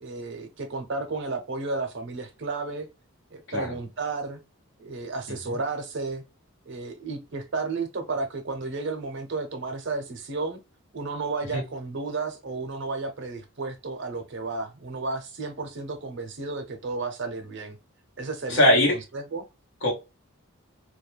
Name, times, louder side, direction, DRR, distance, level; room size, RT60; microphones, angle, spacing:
voice 1, 0.0-2.9 3.3-4.4 4.8-6.2 6.7-10.6 10.9-17.8 18.2-19.4, right 3 dB, 55° right, 0.6 m, -32 dB
voice 2, 18.5-18.9 19.8-19.9, left 1 dB, 60° left, 1.0 m, -21 dB
2.3 x 2.1 x 3.0 m
head